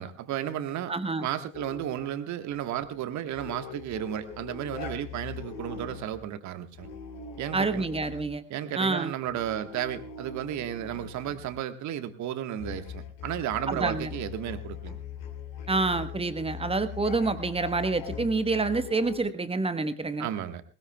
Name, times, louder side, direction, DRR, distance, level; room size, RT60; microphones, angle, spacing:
voice 1, 0.0-0.9 1.2-6.9 7.4-7.9 8.5-15.0 20.2-20.6, right 11 dB, 45° right, 10 dB, 1.5 m, -33 dB
voice 2, 0.9-1.3 7.5-8.4 8.8-9.1 13.7-14.1 15.7-20.3, right 3 dB, 15° right, 11 dB, 1.2 m, -27 dB
sound 1, 1.5-2.2 3.3-6.2 6.7-8.3 9.3-11.6 12.6-19.2, left 7 dB, 60° left, 3.3 m, -41 dB
20.0 x 19.0 x 2.3 m, 0.34 s
figure-of-eight pair, 60°, 38 cm